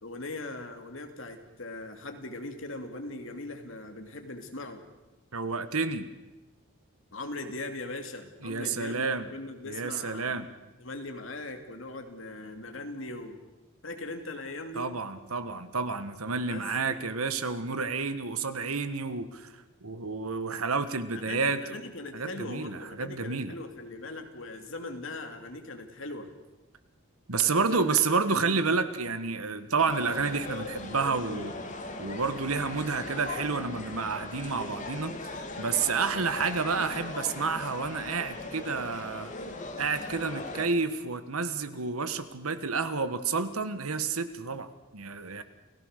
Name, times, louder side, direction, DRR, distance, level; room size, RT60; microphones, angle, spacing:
voice 1, 0.0-4.8 7.1-10.5 10.8-13.4 13.8-14.9 16.5-16.7 21.1-26.3 27.3-28.0 28.3-28.8, left 2 dB, 65° left, 5 dB, 2.5 m, -40 dB
voice 2, 5.3-6.1 8.4-9.2 9.7-10.5 14.7-19.5 19.8-21.6 22.1-23.5 27.3-31.5 32.0-39.3 39.8-45.4, right 4 dB, 85° right, 11 dB, 1.5 m, -30 dB
sound 1, 29.8-40.7, left 2 dB, 35° left, 2.5 m, -39 dB
29.0 x 17.0 x 6.7 m, 1.1 s
head